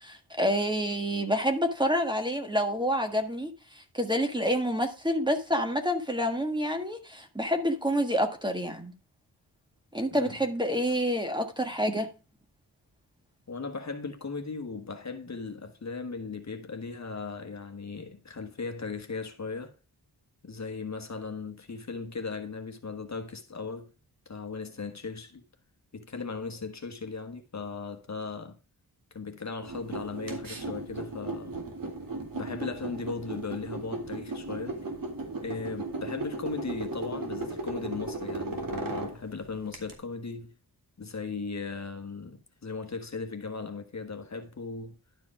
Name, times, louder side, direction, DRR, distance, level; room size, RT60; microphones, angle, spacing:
voice 1, 0.0-8.9 9.9-12.1, equal, 10° right, 1.6 m, -28 dB
voice 2, 13.5-19.7 20.4-23.9 24.2-25.4 25.9-28.6 29.1-31.6 32.3-34.8 35.4-40.5 41.0-45.0, left 4 dB, 45° left, 1.4 m, -37 dB
sound 1, 29.6-39.9, right 2 dB, 60° right, 2.4 m, -36 dB
11.5 x 4.9 x 4.7 m
wide cardioid pair, 115°, 39 cm